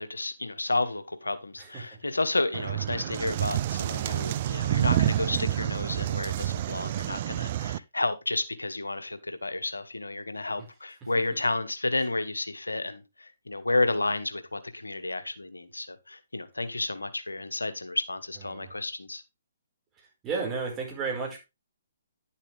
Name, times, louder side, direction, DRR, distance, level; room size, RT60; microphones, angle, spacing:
voice 1, 0.0-19.2, left 2 dB, 90° left, 1.1 m, -31 dB
sound 1, 2.5-7.8, right 12 dB, 40° right, 0.4 m, -28 dB
voice 2, 20.2-21.4, right 4 dB, 20° right, 4.7 m, -32 dB
10.5 x 7.3 x 3.4 m
figure-of-eight pair, 135°, 0 cm